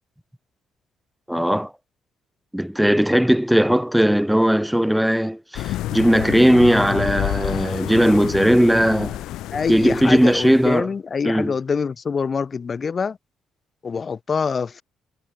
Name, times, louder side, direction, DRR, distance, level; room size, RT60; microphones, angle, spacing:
voice 1, 1.3-1.7 2.5-9.2 9.7-10.9 11.2-11.6, equal, ahead, 0.8 m, -18 dB
sound 1, 5.6-10.8, left 14 dB, 80° left, 0.7 m, -29 dB
voice 2, 9.5-13.2 13.8-14.8, left 5 dB, 30° left, 0.5 m, -25 dB
cardioid pair, 165°, 0 cm